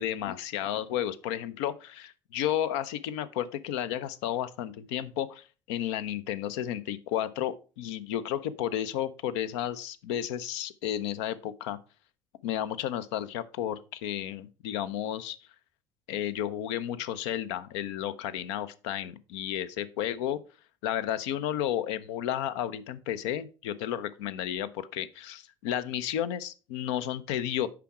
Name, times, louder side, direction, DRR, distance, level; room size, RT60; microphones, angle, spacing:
voice 1, 0.0-11.8 12.4-15.4 16.1-20.4 20.8-27.7, left 11 dB, 70° left, 0.5 m, -32 dB
6.8 x 4.8 x 4.7 m
figure-of-eight pair, 55°, 15 cm